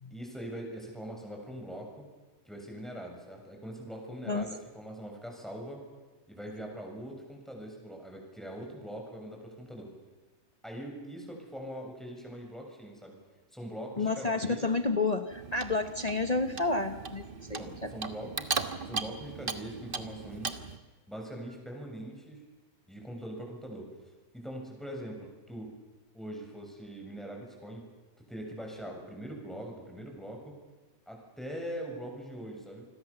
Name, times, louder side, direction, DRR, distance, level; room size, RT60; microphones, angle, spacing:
voice 1, 0.1-2.1 2.5-5.9 6.3-9.9 10.6-13.2 13.5-14.7 17.6-18.5 18.8-20.6 21.1-22.4 22.9-23.9 24.3-25.7 26.1-27.9 28.2-30.6 31.1-32.9, right 1 dB, ahead, 0 dB, 6.9 m, -42 dB
voice 2, 14.0-17.9, left 3 dB, 30° left, 8 dB, 1.1 m, -30 dB
Clock, 15.3-20.8, right 5 dB, 40° right, 1.4 m, -38 dB
28.5 x 21.5 x 7.1 m, 1.2 s
omnidirectional pair, 1.6 m